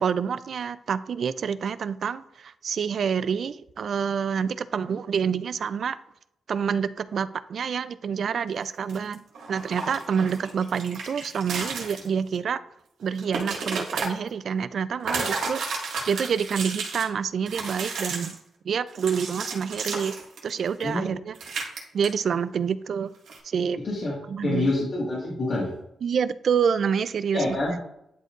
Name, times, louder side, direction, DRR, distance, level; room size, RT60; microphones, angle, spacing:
voice 1, 0.0-6.0 6.5-9.2 9.5-12.6 13.0-18.4 18.7-20.2 20.4-21.3 21.9-23.1 23.4-23.8 24.3-24.7 26.0-27.4, right 7 dB, 65° right, 0.3 m, -27 dB
sound 1, 8.9-12.1 12.3-12.4 13.0-14.1 15.0-17.0 17.5-18.4 18.9-21.0 21.4-21.8 22.0-22.1 23.3-23.4, right 4 dB, 90° right, 1.8 m, -32 dB
voice 2, 23.8-24.2 24.4-25.7 27.3-27.8, left 2 dB, 55° left, 1.7 m, -26 dB
11.0 x 4.4 x 2.5 m
cardioid pair, 105°, 0 cm